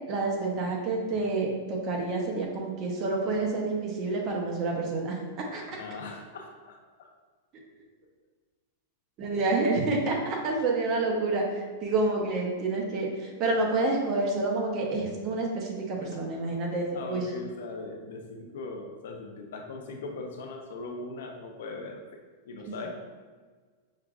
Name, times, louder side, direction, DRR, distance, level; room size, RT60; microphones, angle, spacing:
voice 1, 0.1-5.1 5.5-5.8 9.2-17.2 22.6-22.9, right 3 dB, 30° right, -1 dB, 0.7 m, -28 dB
voice 2, 5.7-7.1 16.0-16.2 16.9-22.0 22.5-22.9, left 3 dB, 70° left, 3 dB, 0.6 m, -40 dB
6.4 x 2.3 x 2.4 m, 1.5 s
supercardioid pair, 165°, 0 cm